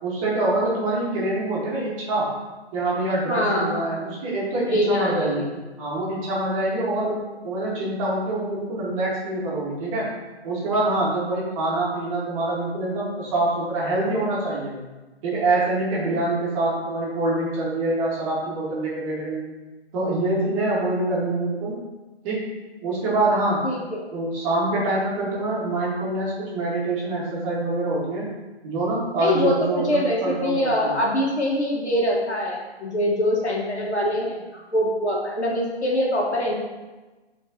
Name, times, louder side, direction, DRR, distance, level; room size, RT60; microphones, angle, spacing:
voice 1, 0.0-2.3 2.7-5.5 5.8-7.1 7.4-10.1 10.4-14.8 15.2-19.4 19.9-21.8 22.2-22.5 22.8-23.6 24.1-28.3 28.6-31.0, right 2 dB, 30° right, -5 dB, 2.0 m, -25 dB
voice 2, 3.3-3.9 4.6-5.5 7.0-7.2 20.6-20.8 23.6-24.1 29.2-36.5, left 1 dB, 85° left, -3 dB, 2.0 m, -24 dB
8.8 x 4.4 x 3.1 m, 1.2 s
figure-of-eight pair, 140°, 33 cm